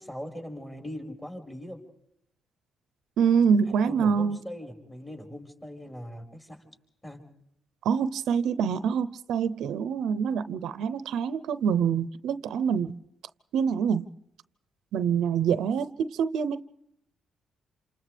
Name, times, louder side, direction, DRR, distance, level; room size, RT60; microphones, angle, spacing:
voice 1, 0.0-1.8 3.8-6.6 7.0-7.2, equal, 15° left, 2 dB, 5.2 m, -40 dB
voice 2, 3.2-4.4 7.8-13.0 13.5-14.1 14.9-16.6, right 7 dB, 80° right, 13 dB, 0.7 m, -25 dB
28.0 x 27.5 x 3.5 m, 0.78 s
cardioid pair, 90°, 0 cm